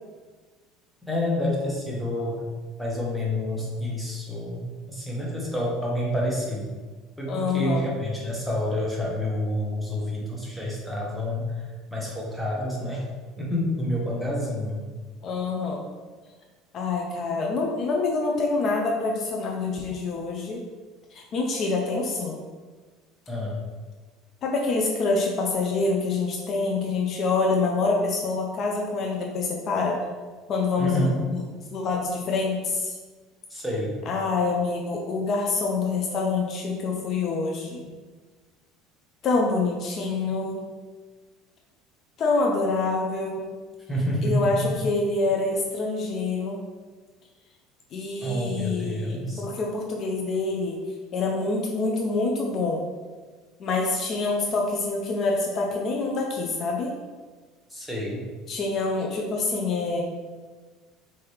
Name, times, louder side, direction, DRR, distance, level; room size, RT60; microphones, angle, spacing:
voice 1, 1.1-2.4 2.8-4.6 4.9-6.7 7.2-11.5 11.9-13.0 13.4-14.9 23.3-23.6 30.8-31.1 33.5-33.9 43.9-44.6 48.2-49.4 57.7-58.2, left 1 dB, ahead, -4 dB, 1.2 m, -28 dB
voice 2, 7.3-7.9 15.2-15.9 16.7-20.6 21.1-22.4 24.4-30.0 30.5-31.4 31.7-33.0 34.0-37.8 39.2-40.6 42.2-43.5 44.2-46.6 47.9-50.8 51.1-52.9 53.6-56.9 58.5-60.0, left 3 dB, 45° left, 0 dB, 0.6 m, -26 dB
4.9 x 2.9 x 3.1 m, 1.4 s
supercardioid pair, 115°, 0 cm